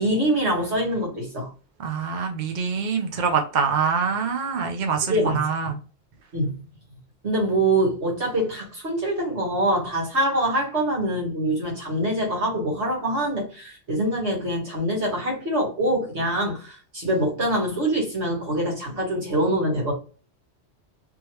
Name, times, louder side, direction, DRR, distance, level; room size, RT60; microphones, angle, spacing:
voice 1, 0.0-1.5 5.0-5.4 6.3-6.5 7.2-19.9, right 1 dB, 70° right, 2.0 m, -24 dB
voice 2, 1.8-5.7, right 6 dB, 50° right, 0.7 m, -25 dB
3.5 x 3.2 x 3.0 m
omnidirectional pair, 1.2 m